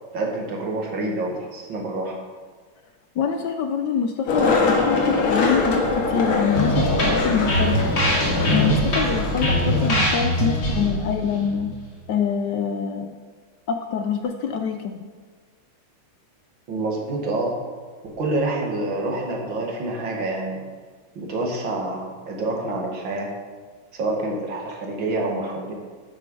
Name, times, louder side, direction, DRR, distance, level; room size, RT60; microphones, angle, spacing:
voice 1, 0.1-2.2 16.7-17.5 18.0-20.6 21.2-23.3 23.9-25.7, right 2 dB, 65° right, 0 dB, 2.5 m, -27 dB
voice 2, 3.2-7.9 8.5-11.8 12.1-13.1 13.7-15.1, left 7 dB, 65° left, 7 dB, 1.2 m, -25 dB
Skateboard, 4.3-9.9, left 3 dB, 85° left, 2.4 m, -23 dB
sound 1, 6.5-12.2, equal, 50° left, 3.2 m, -23 dB
10.0 x 9.0 x 5.4 m, 1.5 s
omnidirectional pair, 2.3 m